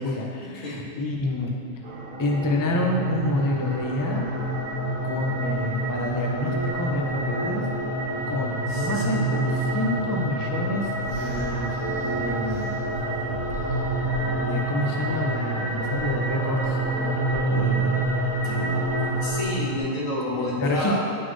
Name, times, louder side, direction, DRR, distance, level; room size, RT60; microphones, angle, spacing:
voice 1, 0.0-1.8 2.2-4.3 5.0-7.7 8.3-11.7 12.0-12.8 13.6-13.9 14.4-18.0 18.4-18.8 20.3-21.0, left 1 dB, 35° left, 0 dB, 0.3 m, -28 dB
sound 1, 1.8-19.8, right 2 dB, 90° right, 1.1 m, -28 dB
sound 2, 1.9-19.4, equal, 10° left, 1.2 m, -33 dB
voice 2, 8.7-9.3 18.9-21.0, left 1 dB, 85° left, -5 dB, 1.7 m, -30 dB
sound 3, 11.0-14.4, right 2 dB, 30° right, 1.3 m, -40 dB
9.7 x 4.1 x 3.2 m, 2.4 s
omnidirectional pair, 1.3 m